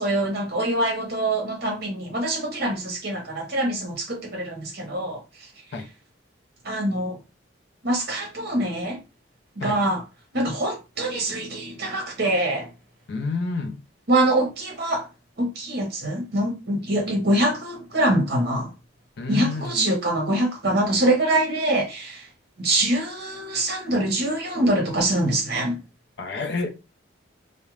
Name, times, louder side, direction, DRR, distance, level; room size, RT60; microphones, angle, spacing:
voice 1, 0.0-5.2 6.6-7.2 7.8-9.0 9.6-10.0 10.3-12.7 14.1-15.1 15.4-18.7 19.3-22.3 22.6-25.8, right 1 dB, 50° right, 0.9 m, -24 dB
voice 2, 13.1-13.8 19.2-19.9 26.2-26.7, left 3 dB, 55° left, 0.4 m, -29 dB
2.3 x 2.1 x 3.0 m
head